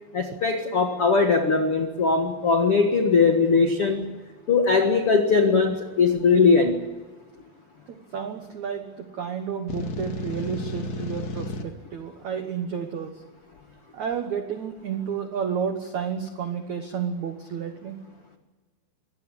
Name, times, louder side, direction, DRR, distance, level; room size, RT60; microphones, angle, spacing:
voice 1, 0.1-4.1 4.5-6.8, left 4 dB, 90° left, 5 dB, 1.2 m, -20 dB
voice 2, 7.9-13.2 13.9-18.0, right 7 dB, 80° right, 7 dB, 1.6 m, -31 dB
sound 1, 9.7-11.6, left 2 dB, 50° left, 2.1 m, -32 dB
24.5 x 17.5 x 9.9 m, 1.3 s
omnidirectional pair, 5.5 m